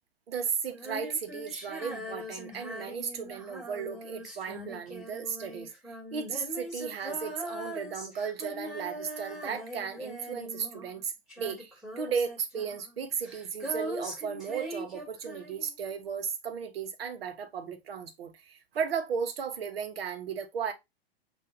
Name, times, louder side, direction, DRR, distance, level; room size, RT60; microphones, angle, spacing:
voice 1, 0.3-5.7 6.1-20.7, right 6 dB, 70° right, 1.1 m, -35 dB
Female singing, 0.7-11.0 11.3-15.7, equal, ahead, 2.4 m, -41 dB
7.4 x 2.7 x 2.6 m
hypercardioid pair, 105°, 30 cm